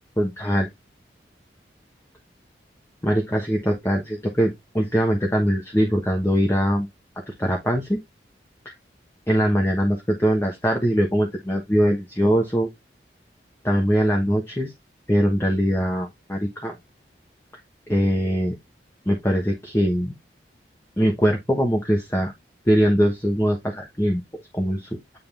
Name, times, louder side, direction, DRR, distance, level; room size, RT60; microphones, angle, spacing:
voice 1, 0.2-0.7 3.0-6.9 7.4-8.0 9.3-12.7 13.6-14.7 15.1-16.8 17.9-18.6 19.1-20.1 21.0-22.3 22.6-25.2, equal, 15° left, 1.1 m, -22 dB
9.5 x 3.7 x 3.3 m
head